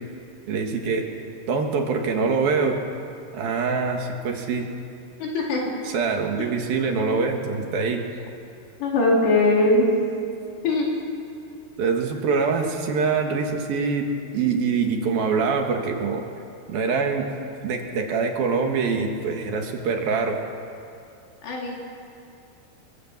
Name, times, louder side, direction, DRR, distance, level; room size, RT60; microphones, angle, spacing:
voice 1, 0.5-1.1 1.5-2.8 3.3-4.7 5.9-8.0 11.8-14.1 14.3-16.2 16.7-17.3 17.6-20.4, right 5 dB, 65° right, 3 dB, 3.6 m, -24 dB
voice 2, 5.2-5.6 6.4-6.5 8.8-9.9 10.6-10.9 21.4-21.8, left 2 dB, 85° left, -2 dB, 6.6 m, -20 dB
25.0 x 25.0 x 7.5 m, 2.5 s
omnidirectional pair, 4.8 m